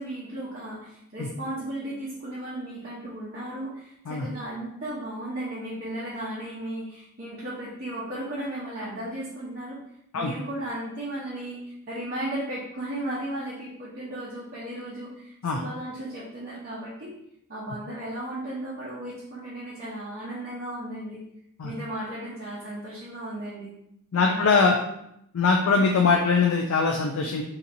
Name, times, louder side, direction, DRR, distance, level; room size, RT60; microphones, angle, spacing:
voice 1, 0.0-9.8 10.1-17.1 17.5-21.2 21.6-23.8 24.2-24.9, right 1 dB, 45° right, -9 dB, 0.8 m, -35 dB
voice 2, 24.1-24.8 25.3-27.4, left 4 dB, 75° left, 2 dB, 0.4 m, -22 dB
3.8 x 2.8 x 2.6 m, 0.76 s
head